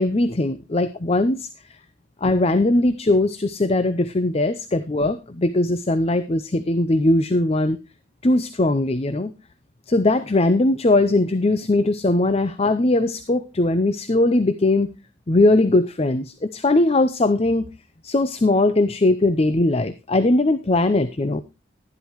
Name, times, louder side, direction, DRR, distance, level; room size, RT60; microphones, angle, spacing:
voice 1, 0.0-1.5 2.2-7.8 8.2-9.3 9.9-14.9 15.3-17.6 18.0-21.4, left 2 dB, 30° left, 12 dB, 0.6 m, -20 dB
12.0 x 11.5 x 3.1 m, 0.28 s
head